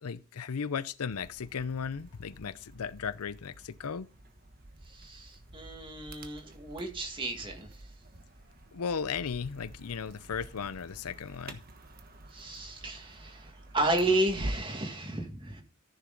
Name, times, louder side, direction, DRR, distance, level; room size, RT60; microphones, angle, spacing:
voice 1, 0.0-4.1 8.7-11.6, left 6 dB, 80° left, 0.6 m, -36 dB
sound 1, 1.1-14.8, right 1 dB, 40° right, 1.2 m, -47 dB
voice 2, 4.9-7.7 12.3-15.6, right 2 dB, 20° right, 2.0 m, -32 dB
14.0 x 6.6 x 3.9 m
head